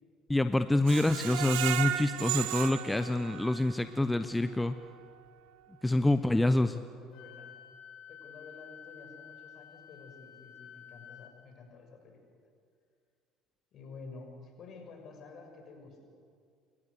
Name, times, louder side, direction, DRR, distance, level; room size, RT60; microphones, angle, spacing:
voice 1, 0.3-4.8 5.8-6.8, left 2 dB, 10° left, 11 dB, 0.9 m, -27 dB
Screech, 0.9-3.8 4.3-4.4 4.8-4.9, right 15 dB, 70° right, 0.8 m, -34 dB
voice 2, 5.9-7.5 8.1-12.2 13.7-16.0, left 4 dB, 50° left, 3 dB, 6.7 m, -50 dB
Wind instrument woodwind instrument, 7.1-11.3, left 9 dB, 65° left, 3.5 m, -51 dB
29.0 x 22.0 x 6.9 m, 2.2 s
hypercardioid pair, 60°, 0 cm